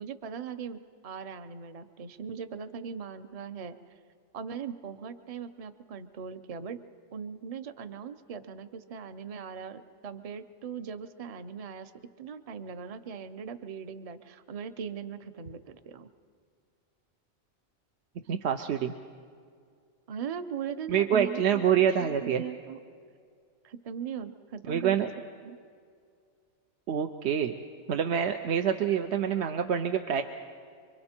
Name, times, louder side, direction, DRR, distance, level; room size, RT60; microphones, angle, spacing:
voice 1, 0.0-3.7 4.3-6.8 7.1-11.9 12.2-16.1 20.1-22.8 23.6-25.6, right 7 dB, 35° right, 11 dB, 0.7 m, -39 dB
voice 2, 18.3-18.9 20.9-22.4 24.7-25.1 26.9-27.5 27.9-30.2, right 8 dB, 65° right, 6 dB, 0.9 m, -26 dB
26.0 x 24.5 x 4.4 m, 2.2 s
omnidirectional pair, 1.3 m